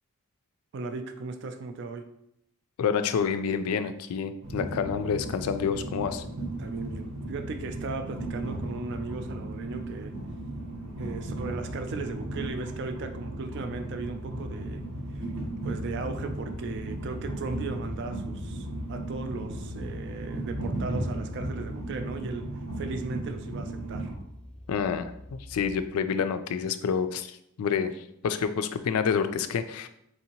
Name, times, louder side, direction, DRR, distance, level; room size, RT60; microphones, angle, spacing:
voice 1, 0.7-2.0 6.6-10.1 11.0-14.8 15.1-24.1, right 3 dB, 55° right, 7 dB, 0.3 m, -37 dB
voice 2, 2.8-6.2 24.7-25.1 25.5-27.9 28.2-29.9, left 6 dB, 90° left, 11 dB, 0.3 m, -28 dB
Train, 4.4-24.2, right 1 dB, 85° right, 1.0 m, -36 dB
sound 1, 14.0-25.8, left 1 dB, 5° left, 0.5 m, -46 dB
4.4 x 2.7 x 2.9 m, 0.76 s
head